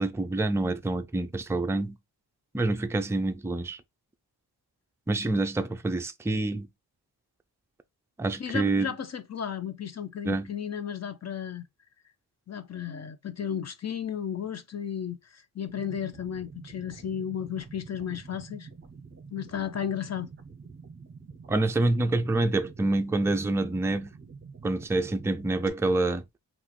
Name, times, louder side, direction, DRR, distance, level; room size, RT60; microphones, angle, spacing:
voice 1, 0.0-2.0 2.5-3.8 5.1-6.7 8.2-8.9 10.2-10.5 21.5-24.1 24.6-26.2, right 2 dB, 5° right, 0.4 m, -27 dB
voice 2, 8.4-11.7 12.5-18.7 19.3-20.3, left 8 dB, 40° left, 0.7 m, -34 dB
sound 1, 15.7-25.7, right 5 dB, 30° right, 1.0 m, -47 dB
5.8 x 2.5 x 3.1 m
wide cardioid pair, 125°, 40 cm